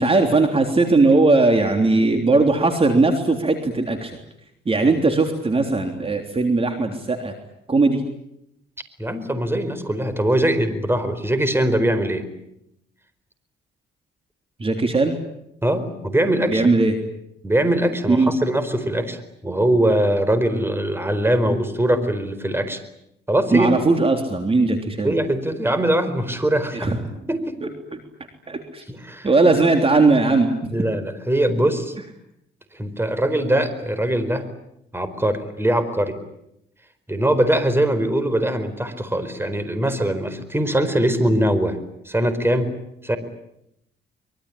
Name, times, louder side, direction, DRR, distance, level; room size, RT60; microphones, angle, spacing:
voice 1, 0.0-4.1 4.6-7.3 7.7-8.0 14.6-15.2 16.5-16.9 18.1-18.3 23.5-25.1 26.7-27.0 27.6-27.7 28.5-28.8 29.2-30.5, right 3 dB, 30° right, 5 dB, 3.4 m, -18 dB
voice 2, 9.0-12.3 15.6-16.7 17.4-22.8 23.3-23.7 25.0-27.6 28.9-29.3 30.7-31.9 32.7-34.5 34.9-36.2 37.1-41.8 42.0-42.7 43.0-43.2, right 1 dB, 10° right, 11 dB, 4.5 m, -22 dB
25.0 x 22.5 x 10.0 m, 0.80 s
cardioid pair, 90°, 20 cm